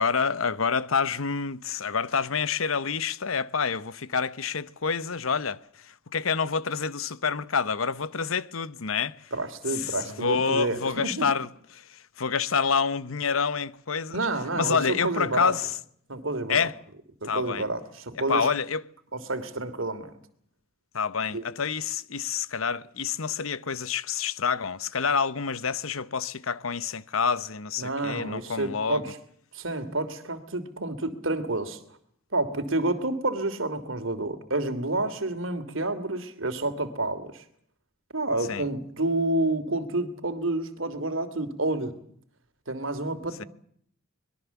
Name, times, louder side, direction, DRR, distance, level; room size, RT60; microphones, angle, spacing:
voice 1, 0.0-9.3 9.8-14.3 14.5-15.7 16.5-16.7 17.2-17.7 18.3-18.8 20.9-29.0 38.5-38.6 43.4-43.5, left 6 dB, 85° left, 1.0 m, -28 dB
voice 2, 9.3-11.3 14.1-15.5 16.1-16.6 17.2-18.5 19.1-20.2 21.3-21.4 27.8-29.2 29.5-31.8 32.3-37.4 38.1-41.9 42.7-43.5, right 2 dB, 70° right, 3.0 m, -29 dB
24.5 x 21.5 x 7.2 m
head